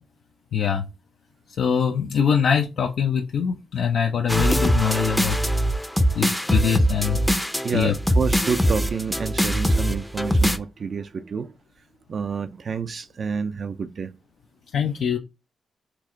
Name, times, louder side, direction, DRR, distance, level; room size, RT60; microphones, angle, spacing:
voice 1, 0.5-0.9 1.6-5.4 6.1-7.2 7.7-7.9 14.7-15.2, left 7 dB, 80° left, 0.5 m, -23 dB
sound 1, 4.3-10.6, equal, 5° left, 0.5 m, -22 dB
voice 2, 7.6-11.5 12.1-14.1, right 5 dB, 50° right, 0.4 m, -29 dB
4.5 x 2.5 x 3.6 m
cardioid pair, 100°, 0 cm